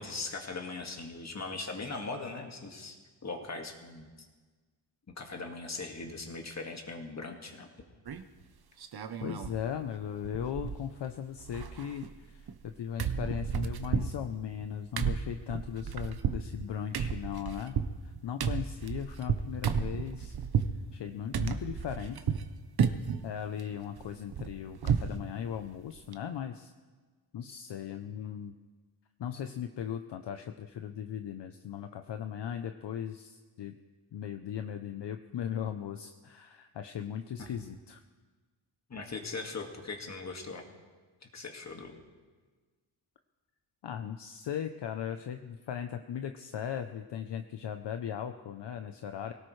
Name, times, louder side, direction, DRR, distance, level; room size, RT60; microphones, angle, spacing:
voice 1, 0.0-4.1 5.2-7.7 38.9-40.6 41.3-42.0, left 3 dB, 35° left, 3 dB, 2.0 m, -40 dB
sound 1, 8.1-8.4 8.8-9.6 9.9-10.0 10.2-11.1 11.4-12.7 13.0-20.8 21.3-22.5 22.8-23.2 23.6-25.2 25.5-25.6 26.0-26.1, right 7 dB, 55° right, 0.9 m, -33 dB
voice 2, 9.2-20.4 20.9-22.3 23.2-26.7 27.3-28.5 29.2-33.8 34.1-38.0 43.8-49.3, left 9 dB, 65° left, 7 dB, 0.7 m, -38 dB
24.5 x 17.5 x 3.3 m, 1.4 s
wide cardioid pair, 125°, 46 cm